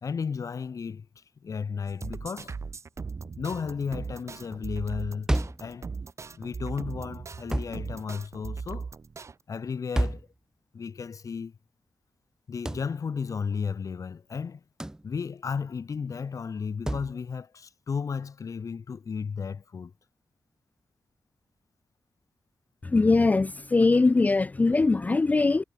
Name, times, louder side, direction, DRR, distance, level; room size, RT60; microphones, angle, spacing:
voice 1, 0.0-2.7 3.2-5.3 5.6-5.9 6.3-8.9 9.5-10.3 10.7-11.6 12.5-14.6 15.0-19.9, left 6 dB, 60° left, 1.5 m, -34 dB
sound 1, 1.9-9.3, right 5 dB, 50° right, 3.5 m, -39 dB
sound 2, 5.3-5.7 7.5-7.8 10.0-10.3 12.7-12.9 14.8-15.0 16.9-17.1, right 1 dB, 10° right, 1.1 m, -28 dB
voice 2, 22.8-25.6, left 3 dB, 25° left, 0.4 m, -21 dB
wide cardioid pair, 120°, 6 cm